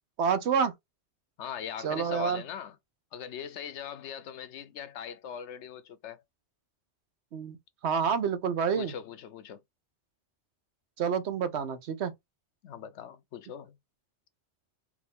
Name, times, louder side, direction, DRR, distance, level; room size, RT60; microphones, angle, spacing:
voice 1, 0.2-0.7 1.8-2.4 7.3-7.6 7.8-8.9 11.0-12.1, right 6 dB, 75° right, 1.1 m, -28 dB
voice 2, 1.4-2.8 3.1-6.2 8.8-9.6 12.6-13.8, left 8 dB, 80° left, 1.0 m, -40 dB
4.8 x 2.6 x 3.5 m
omnidirectional pair, 1.2 m